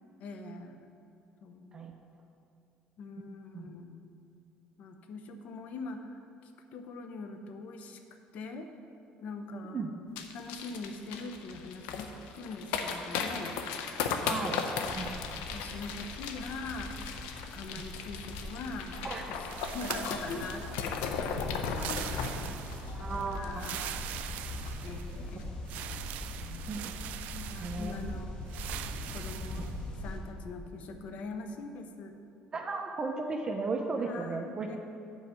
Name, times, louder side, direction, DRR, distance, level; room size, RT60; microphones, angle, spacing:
voice 1, 0.2-0.8 1.4-1.8 3.0-4.1 4.8-8.0 8.3-8.7 9.2-9.9 10.3-13.6 15.0-17.0 17.5-19.0 19.3-21.0 21.6-22.7 23.2-24.3 24.8-25.4 26.4-26.7 27.3-28.4 29.1-29.7 30.0-32.2 34.0-34.8, left 3 dB, 65° left, 6 dB, 0.8 m, -43 dB
sound 1, 10.2-24.0 24.2-24.3 24.6-24.9 25.3-25.4, left 6 dB, 90° left, 0.6 m, -37 dB
voice 2, 14.3-14.6 14.9-15.1 15.3-15.4 19.0-19.2 22.9-23.7 25.3-25.6 26.7-26.9 27.6-27.9 29.6-29.7 32.5-34.7, right 3 dB, 30° right, 3 dB, 0.7 m, -35 dB
sound 2, 14.8-30.2, left 1 dB, 35° left, 1.5 m, -41 dB
sound 3, 19.5-21.0 21.7-23.0 23.5-25.2 25.7-28.1 28.5-29.7, right 12 dB, 70° right, 0.4 m, -42 dB
8.2 x 4.8 x 7.0 m, 2.7 s
cardioid pair, 100°, 3 cm